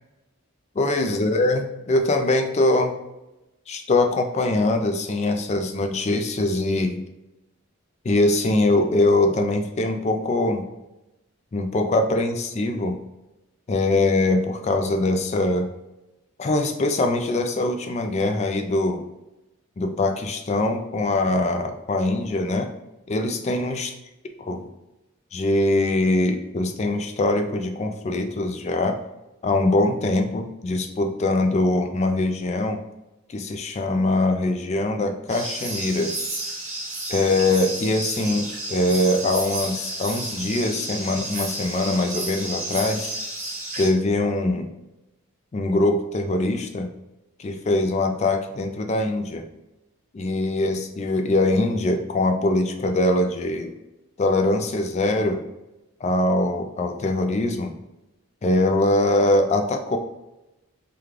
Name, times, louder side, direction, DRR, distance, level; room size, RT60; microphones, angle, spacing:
voice 1, 0.8-2.9 3.7-7.0 8.0-10.6 11.5-13.0 13.7-15.7 16.4-19.1 19.8-22.7 23.1-23.9 24.5-24.6 25.3-29.0 29.4-32.8 33.3-36.1 37.1-43.1 43.8-44.7 45.5-46.9 47.4-49.5 50.1-53.7 54.2-55.5 56.0-57.7 58.4-60.0, left 2 dB, 30° left, 6 dB, 0.3 m, -22 dB
sound 1, 35.3-43.9, right 2 dB, 35° right, 1.1 m, -31 dB
3.6 x 2.3 x 3.1 m, 0.95 s
head